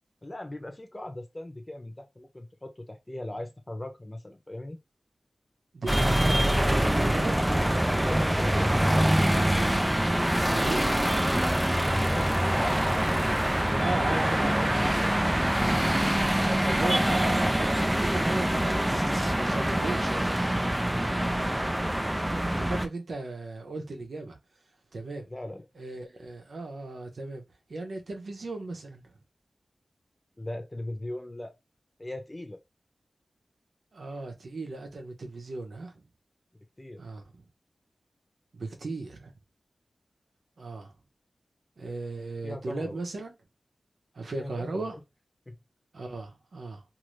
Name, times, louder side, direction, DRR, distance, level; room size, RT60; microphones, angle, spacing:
voice 1, 0.2-4.8 8.0-9.0 11.9-13.4 13.9-15.1 20.9-21.2 25.2-25.6 30.4-31.5 32.0-32.6 36.8-37.0 42.4-43.0 44.4-45.0 45.5-45.6, left 1 dB, 25° left, 0.8 m, -38 dB
voice 2, 5.7-7.4 10.5-10.9 13.7-14.7 16.4-20.3 22.2-24.4 24.9-25.3 25.8-27.4 27.7-29.1 33.9-36.0 37.0-37.4 38.5-39.3 40.6-40.9 41.8-43.4 44.1-44.9 45.9-46.8, right 2 dB, 75° right, 0.8 m, -36 dB
sound 1, 5.9-22.9, right 1 dB, 10° right, 0.4 m, -25 dB
2.6 x 2.6 x 3.1 m
wide cardioid pair, 70°, 0 cm